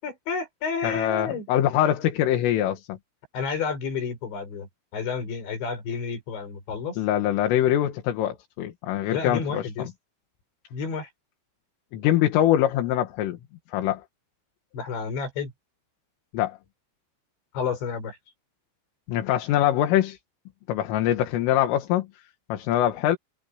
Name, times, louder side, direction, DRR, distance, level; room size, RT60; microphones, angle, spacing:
voice 1, 0.0-1.5 3.3-7.0 9.1-9.9 10.7-11.1 14.7-15.5 17.5-18.2, left 5 dB, 60° left, 7.9 m, -30 dB
voice 2, 0.8-3.0 7.0-9.9 11.9-13.4 13.7-14.0 16.3-16.6 19.1-20.2 20.7-22.1 22.5-23.2, left 12 dB, 75° left, 4.4 m, -23 dB
omnidirectional pair, 5.9 m